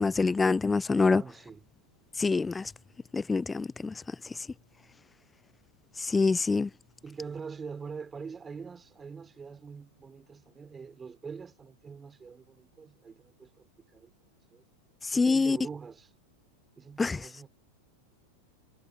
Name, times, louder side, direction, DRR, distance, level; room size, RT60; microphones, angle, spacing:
voice 1, 0.0-1.2 2.2-2.7 3.1-3.9 6.0-6.7 15.0-15.6 17.0-17.2, left 4 dB, 10° left, 0.5 m, -25 dB
voice 2, 0.9-1.6 7.0-14.1 14.5-14.6 15.1-16.1 16.8-17.5, right 5 dB, 15° right, 3.0 m, -44 dB
figure-of-eight pair, 90°, 0 cm